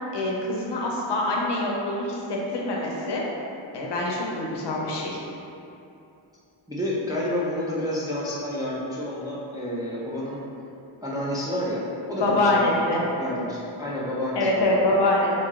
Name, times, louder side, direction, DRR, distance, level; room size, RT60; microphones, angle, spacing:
voice 1, 0.1-3.2 3.7-5.2 12.1-13.0 14.4-15.3, left 2 dB, 60° left, -3 dB, 0.7 m, -24 dB
voice 2, 6.7-10.4 11.0-14.7, left 1 dB, 10° right, -7 dB, 0.3 m, -29 dB
3.0 x 2.7 x 3.5 m, 2.7 s
wide cardioid pair, 135°, 47 cm